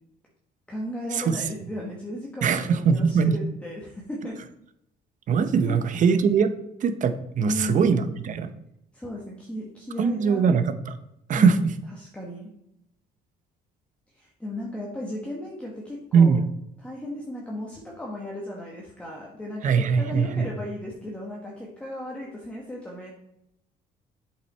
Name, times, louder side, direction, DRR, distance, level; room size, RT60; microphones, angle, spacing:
voice 1, 0.7-4.4 5.6-5.8 7.4-8.2 8.9-10.5 11.3-11.6 12.0-12.5 14.1-16.4 16.8-23.1, left 1 dB, 5° left, -3 dB, 1.4 m, -35 dB
voice 2, 2.4-3.4 5.3-6.5 6.8-8.5 10.0-11.0 11.3-11.6 16.1-16.4 19.6-20.5, right 6 dB, 50° right, 10 dB, 0.8 m, -21 dB
7.9 x 5.8 x 4.3 m, 0.79 s
cardioid pair, 110°, 17 cm